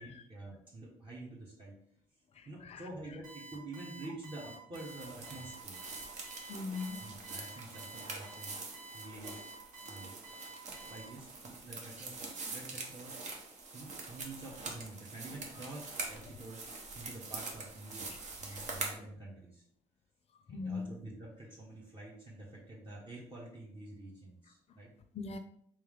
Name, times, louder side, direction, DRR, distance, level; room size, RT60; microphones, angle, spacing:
voice 1, 0.0-1.8 2.5-5.8 7.0-9.4 9.9-10.2 10.7-19.6 20.5-24.9, right 2 dB, 35° right, 1.1 m, -48 dB
voice 2, 2.4-2.8 6.5-7.0 18.5-18.6 20.5-20.9 25.1-25.4, left 4 dB, 45° left, 0.5 m, -40 dB
Alarm, 3.2-11.0, right 3 dB, 80° right, 1.6 m, -50 dB
sound 1, 4.7-19.0, right 3 dB, 55° right, 1.0 m, -44 dB
3.3 x 3.2 x 3.6 m
supercardioid pair, 60°, 14 cm